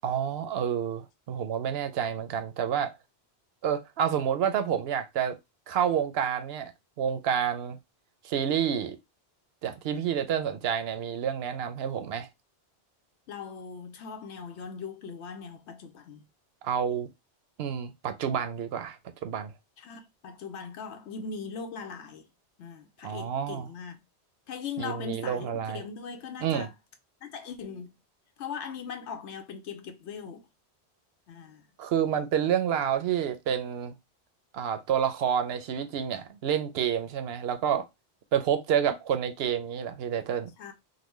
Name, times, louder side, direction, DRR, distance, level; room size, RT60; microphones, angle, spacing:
voice 1, 0.0-2.9 3.6-5.4 5.7-6.7 7.0-7.8 8.2-9.0 9.6-12.3 16.6-17.1 17.6-19.0 19.2-19.5 23.0-23.7 24.8-25.8 26.4-26.7 31.8-33.9 34.5-37.9 38.3-40.5, right 8 dB, 70° right, 0.8 m, -29 dB
voice 2, 13.3-16.2 19.8-22.3 22.6-24.0 24.5-26.7 27.2-27.9 28.4-30.5 31.3-31.7 40.6-40.7, left 6 dB, 85° left, 0.9 m, -40 dB
3.8 x 2.1 x 3.1 m
omnidirectional pair, 1.1 m